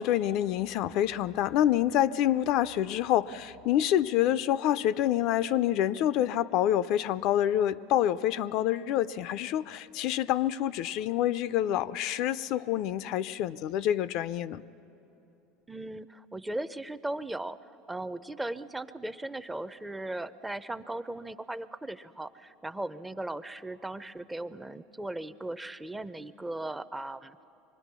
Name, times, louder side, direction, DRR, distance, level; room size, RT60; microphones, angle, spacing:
voice 1, 0.0-14.6, left 12 dB, 60° left, 15 dB, 0.4 m, -27 dB
voice 2, 15.7-17.6 17.9-27.4, right 1 dB, 10° right, 13 dB, 0.5 m, -37 dB
24.5 x 19.5 x 6.0 m, 3.0 s
supercardioid pair, 100°, 0 cm